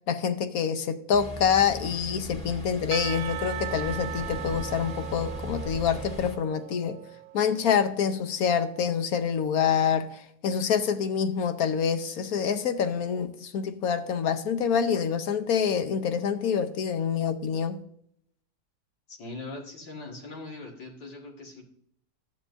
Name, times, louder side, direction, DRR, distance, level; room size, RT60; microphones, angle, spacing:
voice 1, 0.0-7.0 7.3-17.8, left 7 dB, 65° left, 1.1 m, -26 dB
Ocean, 1.1-6.4, equal, 5° left, 2.1 m, -38 dB
Percussion / Church bell, 2.9-8.1, right 15 dB, 80° right, 1.2 m, -39 dB
voice 2, 19.1-21.6, left 2 dB, 80° left, 2.5 m, -41 dB
12.5 x 9.6 x 2.6 m
omnidirectional pair, 1.8 m